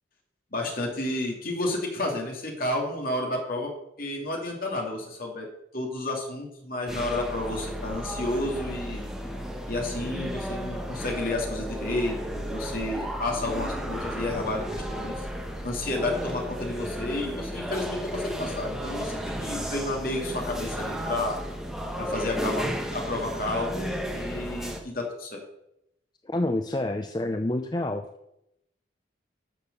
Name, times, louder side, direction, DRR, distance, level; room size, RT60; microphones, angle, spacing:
voice 1, 0.5-3.7 4.0-5.5 5.7-9.1 9.7-15.3 15.6-21.4 22.0-25.4, left 2 dB, 50° left, 0 dB, 2.7 m, -31 dB
sound 1, 6.9-24.8, equal, ahead, 1.3 m, -33 dB
voice 2, 26.3-28.0, left 1 dB, 20° left, 7 dB, 0.5 m, -28 dB
11.0 x 6.6 x 6.7 m, 0.83 s
head